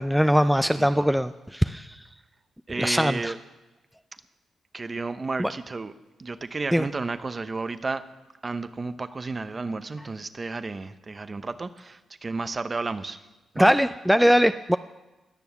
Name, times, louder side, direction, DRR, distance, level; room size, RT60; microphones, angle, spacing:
voice 1, 0.0-2.0 2.8-3.3 5.4-5.5 6.7-6.9 13.6-14.8, equal, ahead, 10 dB, 0.4 m, -21 dB
voice 2, 2.7-3.4 4.7-5.9 6.2-8.0 8.4-13.3 13.5-13.7, right 3 dB, 35° right, 12 dB, 0.8 m, -32 dB
20.0 x 7.0 x 7.1 m, 1.1 s
cardioid pair, 75°, 0 cm